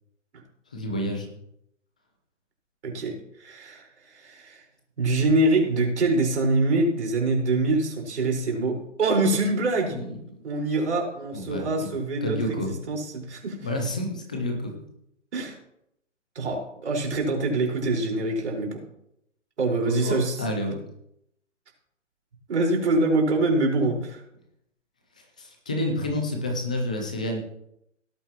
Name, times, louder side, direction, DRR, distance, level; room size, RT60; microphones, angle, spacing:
voice 1, 0.7-1.4 9.9-10.1 11.3-11.9 12.2-12.7 13.6-14.8 19.8-20.8 23.8-23.9 25.4-27.4, left 1 dB, 5° left, 3 dB, 0.4 m, -29 dB
voice 2, 2.8-3.1 3.4-4.6 5.0-10.0 10.4-13.6 15.3-15.6 16.3-18.8 19.6-20.5 22.5-24.0, right 2 dB, 60° right, 0 dB, 4.8 m, -24 dB
17.5 x 9.0 x 3.0 m, 0.79 s
figure-of-eight pair, 140°, 38 cm